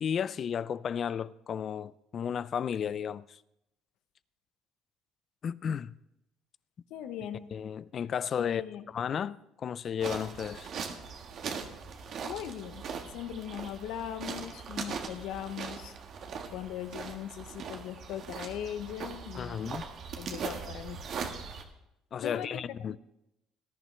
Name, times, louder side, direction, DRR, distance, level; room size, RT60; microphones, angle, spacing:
voice 1, 0.0-3.4 5.4-5.9 7.5-10.7 19.4-19.8 22.1-23.0, left 8 dB, 45° left, 0.4 m, -33 dB
voice 2, 6.9-7.5 8.4-8.8 12.2-15.9 16.5-19.8 20.2-21.0 22.2-23.0, left 10 dB, 75° left, 0.9 m, -39 dB
Walking on a gravel forest road, 10.0-21.6, right 6 dB, 55° right, 1.6 m, -40 dB
19.0 x 11.0 x 3.3 m
cardioid pair, 95°, 0 cm